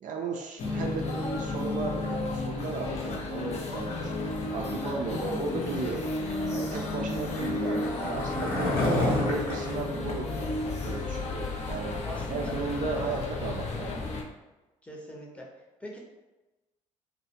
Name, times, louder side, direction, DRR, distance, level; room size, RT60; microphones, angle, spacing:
voice 1, 0.0-6.1 6.5-8.7 9.2-11.9 12.3-14.0, right 4 dB, 50° right, 1 dB, 0.4 m, -35 dB
sound 1, 0.6-14.2, left 2 dB, 40° left, 0.5 m, -33 dB
Skateboard, 5.6-11.0, left 1 dB, 65° left, 0.9 m, -32 dB
voice 2, 12.0-12.5 12.9-13.1 14.8-15.5 15.8-16.0, equal, 10° left, -2 dB, 0.7 m, -42 dB
2.3 x 2.2 x 2.8 m, 1.1 s
hypercardioid pair, 55°, 17 cm